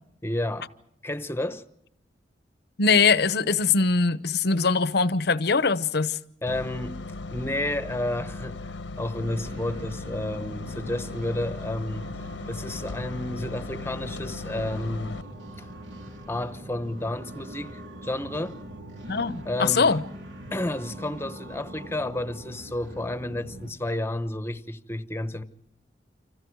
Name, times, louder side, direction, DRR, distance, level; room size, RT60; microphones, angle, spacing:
voice 1, 0.2-0.7 1.0-1.6 6.4-7.0 7.3-12.0 12.5-15.2 15.6-15.7 16.3-18.6 19.4-20.0 20.5-25.4, left 1 dB, 15° left, 1.0 m, -31 dB
voice 2, 2.8-6.2 19.1-20.0, left 4 dB, 65° left, 0.9 m, -22 dB
sound 1, 6.5-15.2, left 3 dB, 90° left, 1.1 m, -37 dB
sound 2, 9.2-23.7, equal, 80° right, 3.9 m, -42 dB
29.0 x 26.5 x 4.7 m
head